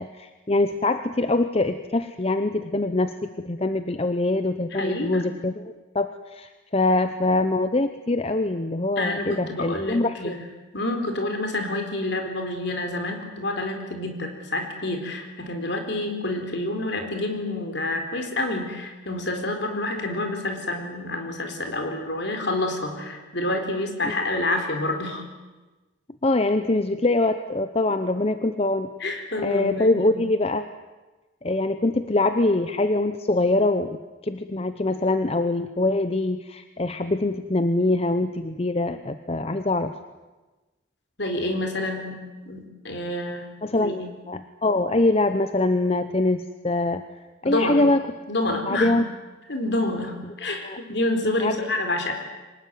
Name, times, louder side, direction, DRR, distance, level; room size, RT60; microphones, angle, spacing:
voice 1, 0.0-10.4 24.0-24.1 26.2-28.9 29.4-30.7 31.4-34.0 34.2-40.0 43.6-47.1 47.4-48.0 48.6-49.1 50.2-50.3 50.6-50.8 51.4-51.6, left 2 dB, 30° left, 10 dB, 0.8 m, -24 dB
voice 2, 4.7-5.3 9.0-10.4 10.7-25.2 29.0-30.1 41.2-44.1 47.4-47.9 48.3-49.0 49.5-52.1, left 2 dB, 60° left, 5 dB, 4.3 m, -28 dB
24.0 x 19.5 x 9.5 m, 1.2 s
head